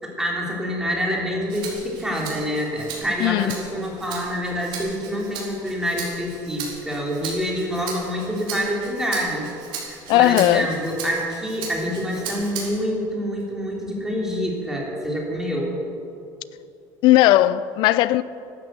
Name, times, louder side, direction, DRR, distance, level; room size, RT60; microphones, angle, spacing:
voice 1, 0.0-9.5 9.8-15.8, equal, 5° right, 3.2 m, -26 dB
Rattle (instrument), 1.5-12.9 13.4-14.6, right 5 dB, 60° right, 4.6 m, -37 dB
voice 2, 3.2-3.5 10.1-10.7 17.0-18.2, left 15 dB, 60° left, 0.5 m, -17 dB
13.5 x 10.5 x 8.2 m
cardioid pair, 150°, 9 cm